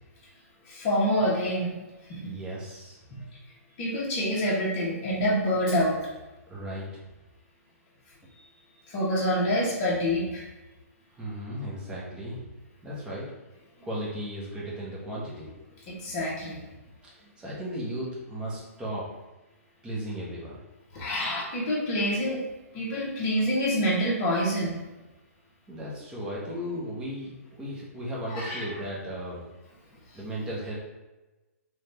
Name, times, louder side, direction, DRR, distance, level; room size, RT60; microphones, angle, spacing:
voice 1, 0.7-1.8 2.1-2.3 3.1-3.2 3.8-6.0 8.9-10.4 15.9-16.6 20.9-22.4 22.7-24.7 28.3-28.6, equal, 35° left, -5 dB, 1.3 m, -27 dB
voice 2, 2.2-3.0 6.5-6.9 11.2-12.4 12.8-13.2 13.8-15.6 17.4-19.0 19.8-20.6 25.7-29.4 30.1-30.7, equal, 10° right, -6 dB, 1.1 m, -35 dB
4.1 x 2.6 x 3.3 m, 1.1 s
hypercardioid pair, 140°, 8 cm